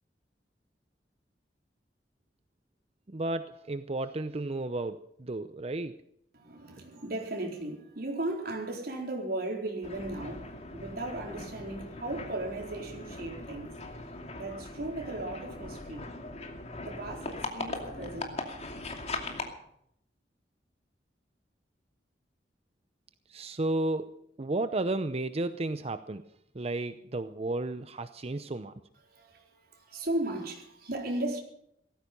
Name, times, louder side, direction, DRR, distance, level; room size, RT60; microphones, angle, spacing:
voice 1, 3.1-6.0 23.3-26.3 26.5-28.7, right 2 dB, 35° right, 0.7 m, -33 dB
voice 2, 6.3-13.8 14.4-16.1 16.8-18.6 29.1-31.4, right 1 dB, 60° right, 4.1 m, -36 dB
sound 1, 9.8-19.5, left 2 dB, 40° left, 2.6 m, -40 dB
17.5 x 15.0 x 5.4 m
head